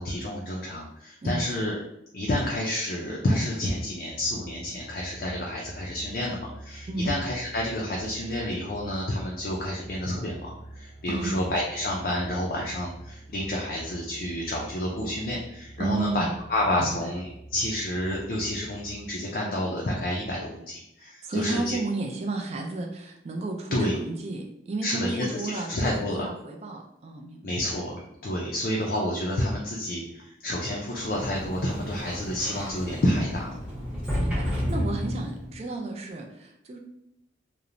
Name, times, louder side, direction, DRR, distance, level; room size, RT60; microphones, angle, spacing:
voice 1, 0.0-1.7 2.1-21.8 23.7-23.9 24.8-26.3 27.4-33.6, left 1 dB, 50° left, -3 dB, 0.4 m, -29 dB
voice 2, 1.2-1.6 6.9-7.1 11.1-11.4 15.8-16.3 16.8-17.1 21.0-27.6 34.1-36.8, right 3 dB, 35° right, 2 dB, 0.3 m, -32 dB
sound 1, 4.1-19.1, right 1 dB, 70° right, 0.9 m, -45 dB
Sliding door, 30.9-35.6, equal, 5° right, 0.7 m, -32 dB
3.0 x 2.0 x 2.5 m, 0.82 s
head